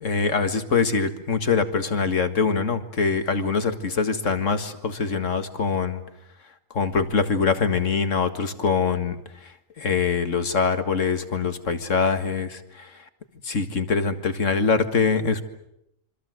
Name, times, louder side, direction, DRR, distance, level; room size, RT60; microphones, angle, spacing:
voice 1, 0.0-6.0 6.7-9.2 9.8-12.9 13.4-15.4, left 5 dB, 65° left, 9 dB, 2.1 m, -23 dB
28.0 x 24.5 x 7.9 m, 0.79 s
omnidirectional pair, 1.4 m